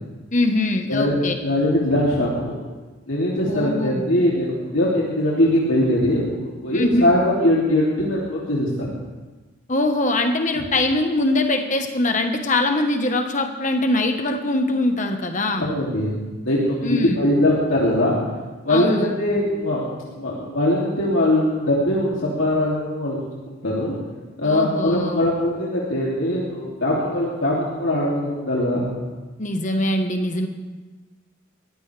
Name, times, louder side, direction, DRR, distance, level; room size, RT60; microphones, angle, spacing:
voice 1, 0.3-1.3 3.5-4.1 6.7-7.0 9.7-15.7 16.8-17.2 18.7-19.1 24.4-25.3 29.4-30.5, left 2 dB, 35° left, 5 dB, 1.3 m, -22 dB
voice 2, 0.9-2.7 3.1-8.9 15.6-16.2 16.4-18.1 18.6-19.9 20.2-23.2 23.6-23.9 24.4-28.9, left 1 dB, 70° left, -6 dB, 2.9 m, -21 dB
21.0 x 15.0 x 3.5 m, 1.2 s
head